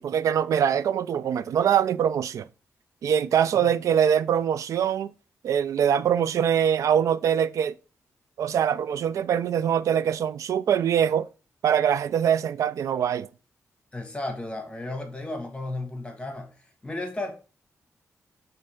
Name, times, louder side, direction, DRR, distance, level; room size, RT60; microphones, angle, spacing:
voice 1, 0.0-2.5 3.0-5.1 5.4-7.8 8.4-11.3 11.6-13.3, right 8 dB, 80° right, 0.4 m, -23 dB
voice 2, 3.3-3.7 13.9-16.6 16.8-17.3, left 2 dB, 20° left, 1.9 m, -34 dB
5.6 x 4.0 x 5.1 m
cardioid pair, 95°, 5 cm